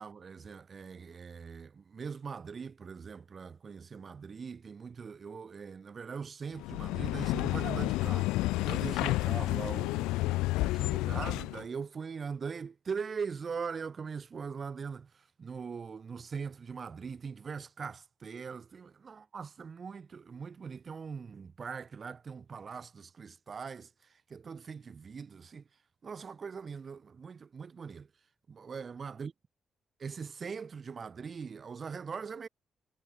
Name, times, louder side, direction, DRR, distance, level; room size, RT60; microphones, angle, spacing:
voice 1, 0.0-8.3 8.6-25.6 26.0-28.1 28.5-29.3 30.0-32.5, right 5 dB, 50° right, 4.5 m, -41 dB
sound 1, 6.6-11.6, left 19 dB, 85° left, 0.7 m, -30 dB
supercardioid pair, 50°, 0 cm